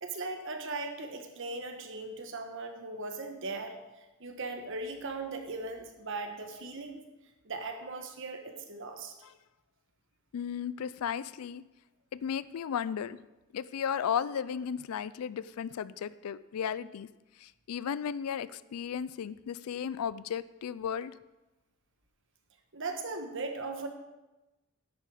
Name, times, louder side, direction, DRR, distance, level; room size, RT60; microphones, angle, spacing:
voice 1, 0.0-7.0 7.4-9.1 22.7-23.9, right 3 dB, 60° right, 5 dB, 1.3 m, -38 dB
voice 2, 10.3-11.6 12.1-13.2 13.5-17.1 17.4-21.1, left 8 dB, 80° left, 18 dB, 0.4 m, -35 dB
10.5 x 8.4 x 4.9 m, 1.1 s
head